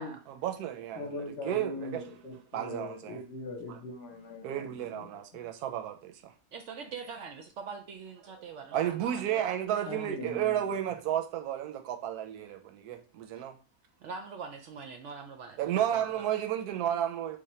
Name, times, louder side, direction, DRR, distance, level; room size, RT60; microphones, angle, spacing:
voice 1, 0.3-1.0 1.4-2.0 2.5-3.2 4.4-6.3 8.7-13.6 15.6-17.4, right 11 dB, 85° right, 1.1 m, -32 dB
voice 2, 0.9-5.2 9.9-10.8, left 2 dB, 55° left, 0.9 m, -41 dB
voice 3, 6.5-10.1 13.3-13.4 14.0-16.3, right 5 dB, 65° right, 0.7 m, -44 dB
3.1 x 2.1 x 4.2 m
omnidirectional pair, 1.6 m